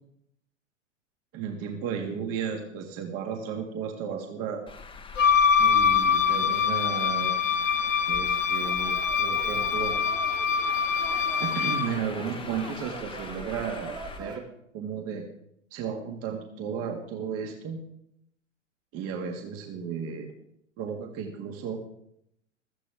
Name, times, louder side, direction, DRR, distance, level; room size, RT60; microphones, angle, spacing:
voice 1, 1.3-4.6 5.6-7.3 8.1-10.0 11.4-14.4 14.7-15.2 15.7-17.8 18.9-20.3 20.8-21.8, right 6 dB, 40° right, 3 dB, 2.1 m, -34 dB
Traffic noise roadway noise, 4.7-14.2, left 4 dB, 15° left, 1.4 m, -43 dB
Wind instrument woodwind instrument, 5.2-11.9, left 6 dB, 80° left, 1.0 m, -24 dB
sound 1, 8.6-14.4, right 3 dB, 10° right, 1.9 m, -44 dB
16.5 x 13.5 x 3.6 m, 0.76 s
figure-of-eight pair, 100°, 38 cm